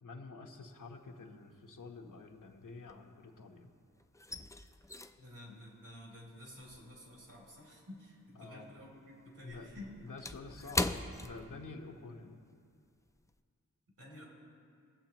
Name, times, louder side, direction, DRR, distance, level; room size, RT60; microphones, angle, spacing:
voice 1, 0.0-3.7 8.4-8.7 9.4-9.7 10.0-12.4, left 3 dB, 70° left, 3 dB, 1.1 m, -49 dB
sound 1, 0.7-1.3 1.6-3.6 3.8-8.5 8.8-12.1 12.4-12.6 13.1-13.3, left 2 dB, 10° left, 0.4 m, -41 dB
voice 2, 5.2-10.0 14.0-14.3, left 1 dB, 70° right, -2 dB, 3.0 m, -51 dB
21.0 x 7.7 x 3.0 m, 2.4 s
wide cardioid pair, 110°, 33 cm